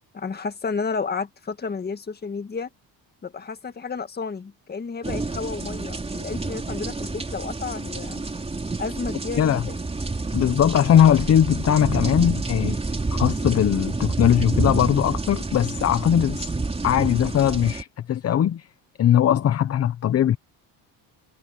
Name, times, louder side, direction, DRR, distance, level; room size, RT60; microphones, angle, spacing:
voice 1, 0.1-2.7 3.2-8.2 8.8-9.8, left 5 dB, 25° left, 1.8 m, -31 dB
sound 1, 5.0-17.8, right 3 dB, 15° right, 4.1 m, -28 dB
voice 2, 10.3-12.8 13.2-16.5 16.8-18.7 19.0-20.4, left 10 dB, 40° left, 0.9 m, -20 dB
cardioid pair, 120°, 36 cm